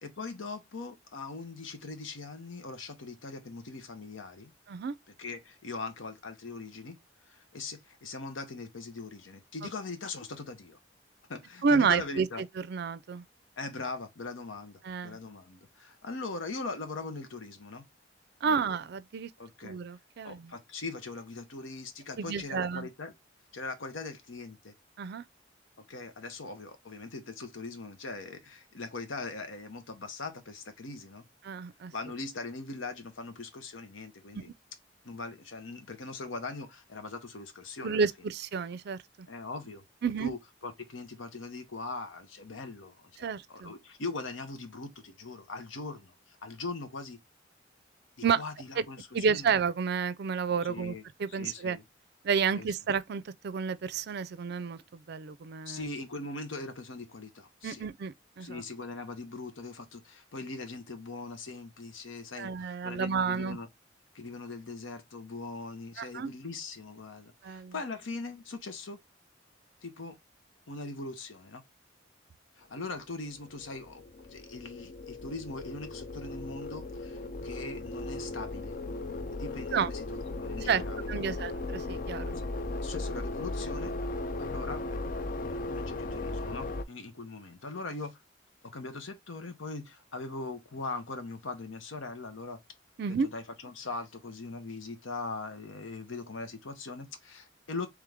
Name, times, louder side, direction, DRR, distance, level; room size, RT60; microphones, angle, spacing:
voice 1, 0.0-4.5 5.2-7.0 7.3-10.8 11.3-12.4 13.6-17.8 18.4-18.6 19.4-19.8 20.2-23.1 23.5-24.7 25.9-31.2 31.9-34.5 35.0-38.1 39.3-39.8 40.2-47.2 48.3-49.5 50.6-51.0 51.3-51.8 52.5-52.7 55.6-57.8 58.4-63.7 64.1-69.0 69.8-70.2 70.7-71.6 72.6-74.0 74.3-78.8 79.3-80.0 80.3-81.4 82.4-82.5 82.8-83.9 84.4-84.8 85.4-88.2 88.7-92.6 93.1-97.9, left 3 dB, 90° left, 0.9 m, -41 dB
voice 2, 11.6-12.3 12.6-13.2 14.8-15.2 18.4-19.3 19.6-20.5 22.2-22.9 25.0-25.2 31.4-31.9 34.3-34.4 37.8-39.0 40.0-40.3 43.2-43.7 48.2-48.4 48.8-48.9 49.1-51.8 52.2-55.9 57.6-58.6 62.4-63.6 66.0-66.3 67.4-67.7 79.7-79.9 80.7-80.8 81.1-82.4 93.0-93.3, right 6 dB, 55° right, 0.4 m, -30 dB
sound 1, 73.2-86.8, left 2 dB, 45° left, 0.4 m, -37 dB
3.6 x 3.3 x 3.3 m
head